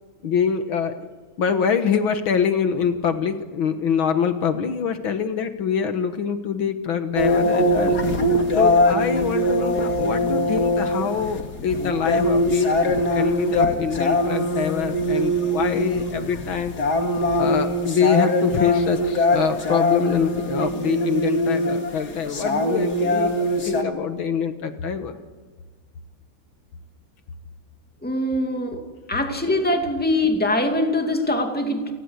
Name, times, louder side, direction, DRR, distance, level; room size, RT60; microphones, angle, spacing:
voice 1, 0.2-1.0 1.4-8.0 8.6-16.7 17.4-25.1, left 7 dB, 70° left, 8 dB, 2.1 m, -24 dB
sound 1, 7.2-23.8, left 1 dB, 50° left, 2.7 m, -22 dB
voice 2, 28.0-28.8 29.1-31.9, left 1 dB, 5° left, 4 dB, 2.4 m, -23 dB
29.0 x 20.0 x 8.1 m, 1.4 s
omnidirectional pair, 2.3 m